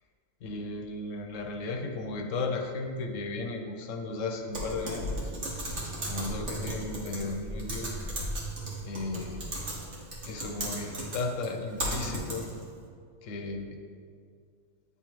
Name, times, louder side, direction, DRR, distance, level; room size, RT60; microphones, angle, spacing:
voice 1, 0.4-5.2 6.1-8.0 8.8-9.4 10.2-12.5 13.2-13.8, left 3 dB, 85° left, 4 dB, 1.0 m, -35 dB
Typing, 4.5-12.7, right 1 dB, 65° right, 1.5 m, -36 dB
9.4 x 3.6 x 3.0 m, 2.2 s
omnidirectional pair, 1.3 m